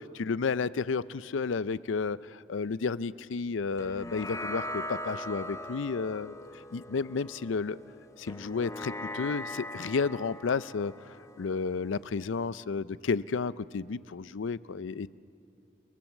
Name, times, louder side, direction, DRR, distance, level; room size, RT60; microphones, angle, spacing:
voice 1, 0.1-6.3 6.7-7.8 8.2-10.9 11.4-15.1, left 4 dB, 75° left, 17 dB, 0.5 m, -32 dB
sound 1, 3.8-12.5, left 1 dB, 15° left, 0.7 m, -41 dB
30.0 x 21.0 x 7.4 m, 2.8 s
head